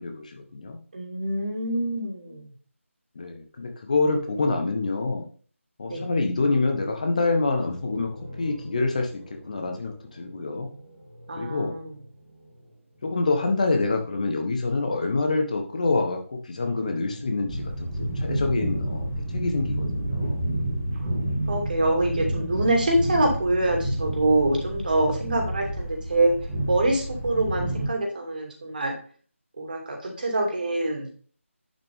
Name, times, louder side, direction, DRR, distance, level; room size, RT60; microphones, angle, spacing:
voice 1, 0.0-0.8 3.1-5.3 5.8-8.1 8.4-10.7 11.4-11.7 13.0-20.4, left 3 dB, 30° left, 4 dB, 1.2 m, -26 dB
voice 2, 0.9-2.5 5.9-6.0 11.3-11.9 21.0-21.2 21.5-26.3 26.7-28.9 29.6-31.1, right 2 dB, 40° right, 1 dB, 2.7 m, -25 dB
sound 1, 7.3-14.6 16.6-17.7, equal, 10° left, 2.9 m, -46 dB
sound 2, 17.5-27.9, right 1 dB, 10° right, 2.0 m, -29 dB
10.5 x 5.9 x 3.6 m, 0.43 s
figure-of-eight pair, 160°, 7 cm